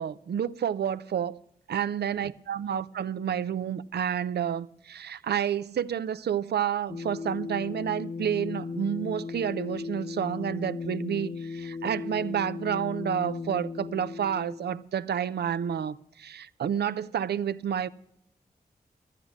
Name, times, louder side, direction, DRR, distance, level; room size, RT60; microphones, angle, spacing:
voice 1, 0.0-1.4 1.7-17.9, right 9 dB, 85° right, 0.5 m, -30 dB
sound 1, 6.9-14.9, left 5 dB, 40° left, 0.4 m, -37 dB
12.0 x 10.0 x 6.2 m
cardioid pair, 55°, 17 cm